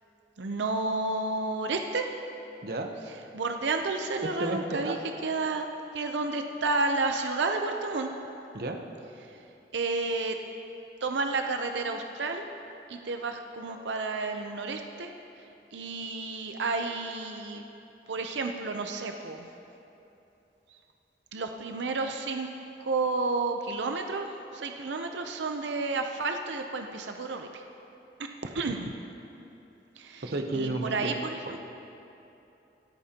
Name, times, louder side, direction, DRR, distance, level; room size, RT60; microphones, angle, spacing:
voice 1, 0.4-2.1 3.3-5.0 5.2-5.7 5.9-8.1 9.3-9.4 9.7-10.4 11.0-12.4 12.9-15.1 15.7-17.6 18.1-19.5 20.7-20.8 21.3-22.5 22.8-27.6 28.4-28.9 30.0-30.3 30.5-31.6, right 3 dB, 90° right, 5 dB, 0.6 m, -31 dB
voice 2, 4.2-5.0 8.5-8.8 30.2-31.2 31.5-31.6, right 2 dB, 55° right, 4 dB, 0.9 m, -32 dB
26.0 x 8.7 x 2.9 m, 2.9 s
head